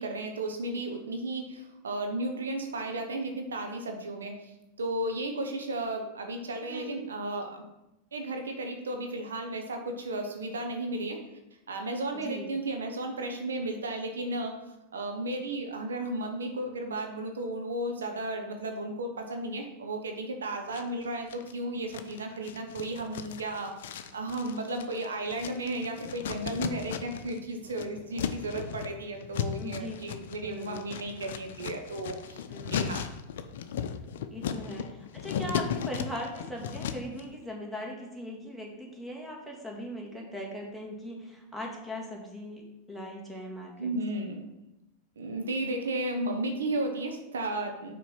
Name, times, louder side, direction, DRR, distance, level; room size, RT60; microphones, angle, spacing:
voice 1, 0.0-7.6 8.1-11.2 11.7-14.6 14.9-23.7 24.1-33.0 43.8-44.5 45.2-47.9, right 1 dB, 90° right, 4 dB, 1.0 m, -34 dB
voice 2, 12.1-12.5 29.6-30.0 30.4-30.8 32.5-32.9 34.3-44.2, left 1 dB, 5° right, -1 dB, 1.9 m, -40 dB
sound 1, 20.7-21.5 21.9-27.4 27.6-37.2, left 8 dB, 70° left, 0.6 m, -36 dB
5.9 x 4.4 x 5.8 m, 0.97 s
hypercardioid pair, 105°, 0 cm